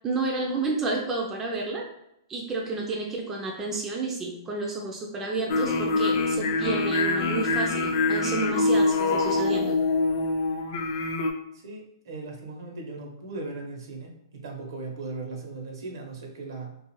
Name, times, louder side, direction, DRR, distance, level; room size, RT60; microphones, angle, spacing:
voice 1, 0.0-1.9 2.3-9.8, right 3 dB, 15° right, 0 dB, 0.4 m, -30 dB
sound 1, 5.5-11.3, left 3 dB, 50° left, 0.4 m, -24 dB
voice 2, 11.5-16.8, right 3 dB, 70° right, 1 dB, 0.8 m, -38 dB
2.5 x 2.4 x 3.0 m, 0.81 s
hypercardioid pair, 145°, 2 cm